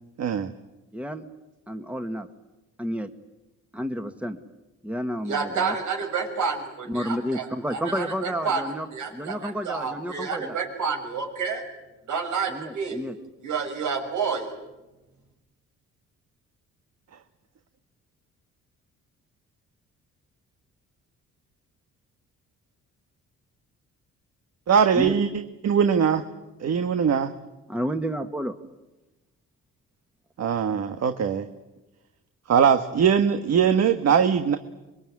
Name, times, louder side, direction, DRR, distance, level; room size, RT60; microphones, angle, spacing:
voice 1, 0.2-0.5 24.7-25.3 25.6-26.2 26.6-27.3 30.4-31.5 32.5-34.6, right 7 dB, 60° right, 8 dB, 1.5 m, -21 dB
voice 2, 0.9-1.2 1.7-2.3 2.8-3.1 3.7-4.4 4.8-5.8 6.9-8.9 9.1-10.6 12.5-13.2 24.9-25.2 27.7-28.5, equal, 5° right, 7 dB, 1.7 m, -30 dB
voice 3, 5.3-7.4 7.7-8.6 8.9-11.6 12.1-13.0 13.4-14.5, right 5 dB, 80° right, 3 dB, 6.7 m, -29 dB
26.5 x 22.0 x 9.6 m, 1.1 s
cardioid pair, 90°, 30 cm